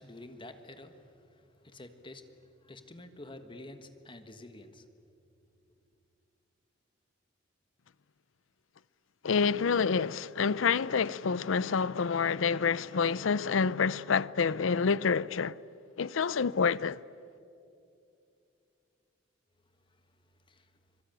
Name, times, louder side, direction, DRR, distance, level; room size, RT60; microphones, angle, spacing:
voice 1, 0.0-4.9 19.9-20.0 20.5-20.7, left 1 dB, 25° left, 1.5 m, -49 dB
voice 2, 9.2-15.5 16.0-17.0, left 5 dB, 90° left, 0.6 m, -28 dB
25.5 x 23.5 x 9.1 m
head